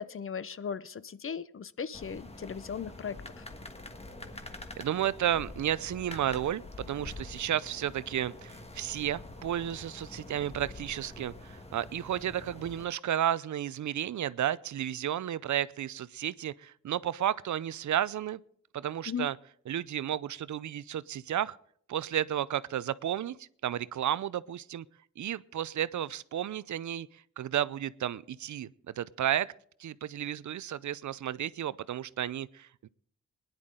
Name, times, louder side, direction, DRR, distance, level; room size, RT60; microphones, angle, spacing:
voice 1, 0.0-3.4 19.1-19.3, left 7 dB, 45° left, 0.6 m, -37 dB
sound 1, 1.9-12.8, left 2 dB, 20° left, 1.4 m, -46 dB
voice 2, 4.8-18.4 18.7-19.4 19.7-21.6 21.9-24.8 25.2-28.7 29.0-29.5 29.8-32.9, right 11 dB, 75° right, 0.5 m, -32 dB
21.5 x 10.5 x 3.8 m
wide cardioid pair, 100°, 30 cm